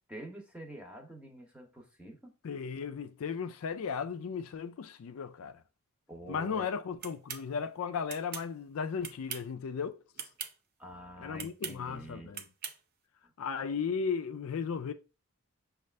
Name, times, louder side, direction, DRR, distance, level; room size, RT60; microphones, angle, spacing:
voice 1, 0.1-2.3 6.1-6.7 10.8-12.4 13.2-13.3, right 1 dB, 5° right, 0.8 m, -47 dB
voice 2, 2.4-5.6 6.3-10.0 11.2-12.4 13.4-14.9, left 6 dB, 65° left, 0.4 m, -35 dB
sound 1, 7.0-7.4 8.1-8.5 9.0-9.5 10.1-10.5 11.4-11.8 12.3-12.8, right 7 dB, 45° right, 0.5 m, -40 dB
6.3 x 2.4 x 3.2 m
head